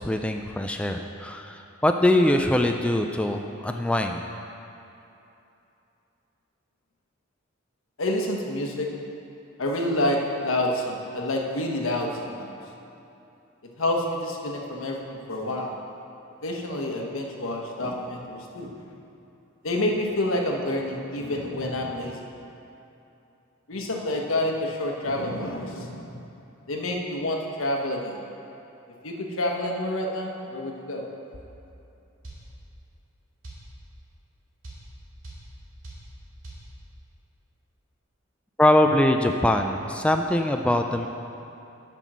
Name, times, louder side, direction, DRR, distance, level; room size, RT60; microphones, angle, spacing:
voice 1, 0.0-4.2 38.6-41.1, left 1 dB, 5° left, 4 dB, 0.3 m, -22 dB
voice 2, 8.0-8.9 9.6-12.6 13.8-15.7 16.4-18.7 19.6-22.2 23.7-26.2 26.7-28.3 29.0-31.1, left 1 dB, 80° left, 1 dB, 1.1 m, -28 dB
sound 1, 32.2-32.5 33.4-33.7 34.6-34.9 35.2-35.5 35.8-36.1 36.4-36.7, right 2 dB, 70° right, 2.2 m, -40 dB
9.0 x 6.0 x 6.1 m, 2.8 s
head